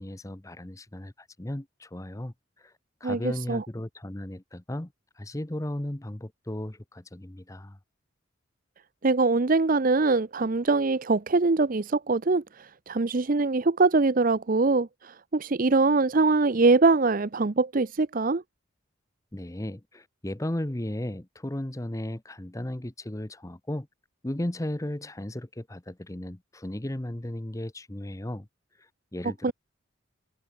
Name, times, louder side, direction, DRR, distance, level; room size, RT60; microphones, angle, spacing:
voice 1, 0.0-2.7 3.0-7.8 19.3-23.9 24.2-28.5 29.1-29.5, left 1 dB, 15° left, 0.8 m, -35 dB
voice 2, 3.0-3.6 9.0-18.4 29.4-29.5, right 3 dB, 45° right, 0.6 m, -23 dB
head